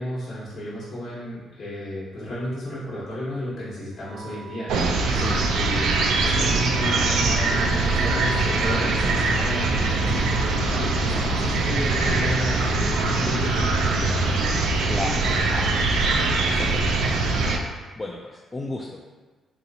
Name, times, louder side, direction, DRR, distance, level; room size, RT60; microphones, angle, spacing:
voice 1, 0.0-4.7 5.5-14.2, equal, 55° left, -9 dB, 0.9 m, -32 dB
Wind instrument woodwind instrument, 4.0-12.2, right 1 dB, 30° right, 0.7 m, -41 dB
sound 1, 4.7-17.6, right 3 dB, 80° right, 0.3 m, -22 dB
voice 2, 5.1-5.4 14.9-15.2 15.5-15.8 16.4-16.9 17.4-17.7 18.0-19.0, left 2 dB, 25° left, -2 dB, 0.3 m, -34 dB
3.0 x 2.9 x 2.6 m, 1.3 s
cardioid pair, 90°, 0 cm